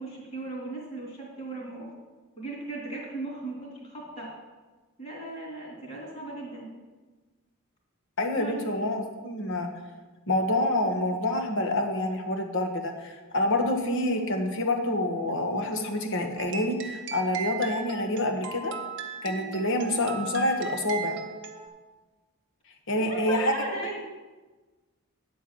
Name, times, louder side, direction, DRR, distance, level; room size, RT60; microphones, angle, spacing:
voice 1, 0.0-1.9 2.4-4.3 5.0-6.7 8.3-8.5 22.9-24.0, right 2 dB, 30° left, -3 dB, 3.1 m, -37 dB
voice 2, 8.2-9.7 10.3-18.7 19.2-21.2 22.9-23.5, left 1 dB, 60° left, 4 dB, 1.2 m, -27 dB
sound 1, 16.4-21.7, right 6 dB, 55° right, 0.9 m, -38 dB
9.5 x 4.6 x 7.5 m, 1.2 s
head